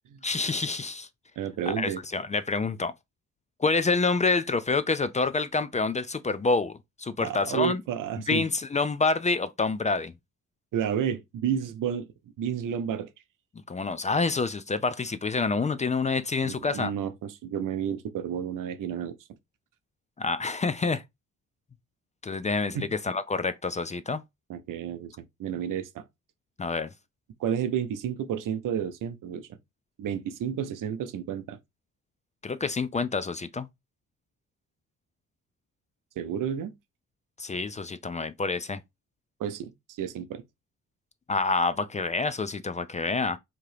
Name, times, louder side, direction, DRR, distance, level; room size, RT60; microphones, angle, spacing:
voice 1, 0.2-1.1 1.7-2.9 3.6-7.8 8.3-10.1 13.7-16.9 20.2-21.0 22.2-24.2 26.6-26.9 32.4-33.7 37.4-38.8 41.3-43.4, left 4 dB, 25° left, 0.3 m, -27 dB
voice 2, 1.4-2.0 7.2-8.5 10.7-12.1 12.4-13.1 16.4-19.2 22.7-22.9 24.5-26.0 27.4-29.6 30.0-31.6 36.2-36.7 39.4-40.4, right 9 dB, 80° right, 0.6 m, -31 dB
3.7 x 2.8 x 3.2 m
cardioid pair, 90°, 32 cm